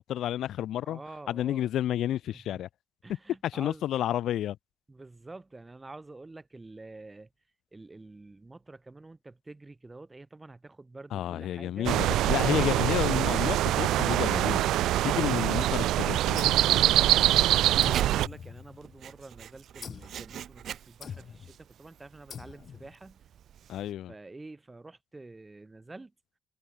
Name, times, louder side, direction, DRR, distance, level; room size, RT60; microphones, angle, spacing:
voice 1, 0.0-1.0 1.3-2.7 3.4-4.6 11.1-14.7 15.0-16.5 23.7-24.1, left 12 dB, 75° left, 1.1 m, -30 dB
voice 2, 0.8-1.7 2.3-2.6 3.0-3.8 4.9-7.3 7.7-12.0 17.1-23.2 24.1-26.1, right 2 dB, 20° right, 4.8 m, -48 dB
sound 1, 11.9-18.3, right 14 dB, 85° right, 0.3 m, -24 dB
sound 2, 16.4-17.4 17.8-19.1 19.8-20.2 21.0-21.6 22.3-22.9, left 7 dB, 55° left, 0.9 m, -44 dB
Writing, 17.6-23.9, right 9 dB, 65° right, 6.7 m, -44 dB
cardioid pair, 90°, 0 cm